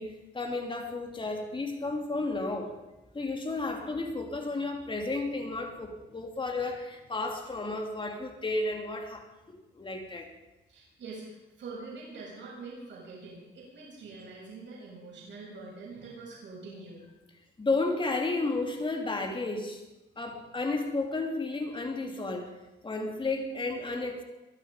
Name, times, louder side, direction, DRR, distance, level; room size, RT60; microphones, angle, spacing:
voice 1, 0.0-2.8 3.1-10.3 17.6-19.8 20.2-22.5 22.8-24.2, left 3 dB, 25° left, 3 dB, 3.1 m, -32 dB
voice 2, 10.7-17.0 20.1-20.3, right 3 dB, 65° right, -4 dB, 7.8 m, -44 dB
22.0 x 12.0 x 5.2 m, 1.0 s
cardioid pair, 90°, 20 cm